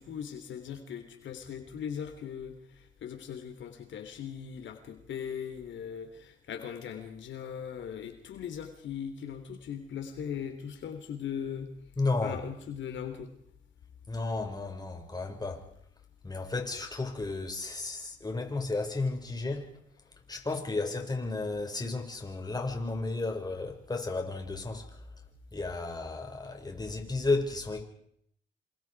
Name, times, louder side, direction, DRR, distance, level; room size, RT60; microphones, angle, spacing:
voice 1, 0.0-11.7 12.2-13.3, left 8 dB, 70° left, 7 dB, 3.4 m, -39 dB
voice 2, 12.0-12.4 14.1-15.6 16.2-19.7 20.3-24.9 25.5-27.8, left 3 dB, 20° left, 3 dB, 5.7 m, -33 dB
28.5 x 27.0 x 4.8 m, 0.70 s
cardioid pair, 90°, 20 cm